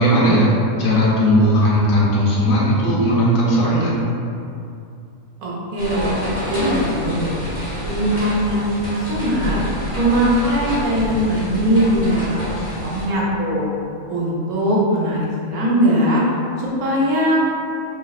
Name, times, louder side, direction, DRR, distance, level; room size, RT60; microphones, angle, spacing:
voice 1, 0.0-3.9, equal, 70° left, -6 dB, 1.1 m, -17 dB
voice 2, 5.4-6.1 6.5-7.4 7.8-9.6 10.0-13.7 14.1-16.2 16.6-17.4, equal, 75° right, -5 dB, 1.2 m, -20 dB
sound 1, 5.8-13.1, equal, 30° left, 0.9 m, -27 dB
4.0 x 3.0 x 2.4 m, 2.5 s
omnidirectional pair, 1.6 m